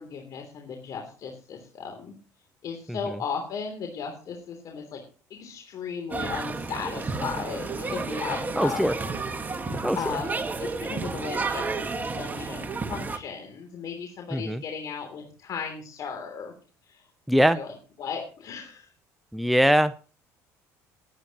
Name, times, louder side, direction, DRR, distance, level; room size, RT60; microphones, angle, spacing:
voice 1, 0.0-2.1 2.6-5.0 5.3-9.1 9.7-16.5 16.8-17.0 17.5-17.7 18.0-18.9, left 6 dB, 55° left, 4 dB, 3.1 m, -36 dB
sound 1, 6.1-13.2, right 4 dB, 25° right, 1.6 m, -31 dB
voice 2, 8.6-8.9 9.8-10.0 14.3-14.6 17.3-17.6 19.3-19.9, equal, ahead, 12 dB, 0.6 m, -21 dB
20.5 x 9.2 x 3.0 m, 0.39 s
supercardioid pair, 85°, 7 cm